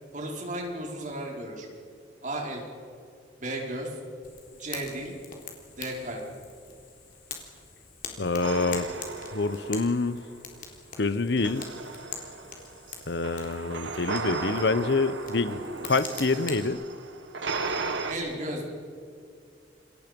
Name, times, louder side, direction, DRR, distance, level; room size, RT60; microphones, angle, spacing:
voice 1, 0.1-1.7 2.2-2.6 3.4-4.0 4.6-5.1 5.8-6.2 18.1-18.7, right 1 dB, 45° right, -1 dB, 5.0 m, -34 dB
Fire, 4.2-16.7, left 6 dB, 45° left, 3.8 m, -44 dB
voice 2, 8.2-8.9 9.3-10.2 11.0-11.6 13.1-16.8, left 3 dB, 65° left, 15 dB, 0.9 m, -26 dB
sound 1, 8.4-10.4 11.3-18.1, right 4 dB, 85° right, 1.9 m, -35 dB
28.0 x 23.0 x 5.3 m, 2.4 s
head